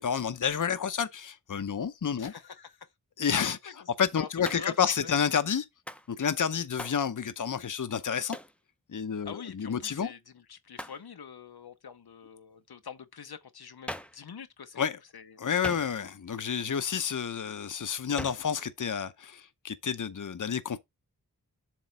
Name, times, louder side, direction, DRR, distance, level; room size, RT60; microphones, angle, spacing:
voice 1, 0.0-2.3 3.2-5.7 6.1-8.4 8.9-10.1 14.7-15.0 15.4-20.8, left 7 dB, 55° left, 0.7 m, -30 dB
voice 2, 2.2-2.8 3.8-3.9 4.2-4.8 5.0-5.1 9.2-14.8 15.1-15.4, left 7 dB, 90° left, 0.8 m, -45 dB
Hands, 4.4-4.9 5.9-6.1 6.8-7.1 8.3-8.6 10.7-11.1 13.9-14.2 15.6-16.2 18.2-18.5, equal, 5° left, 0.6 m, -40 dB
7.5 x 3.1 x 5.3 m
wide cardioid pair, 60°, 37 cm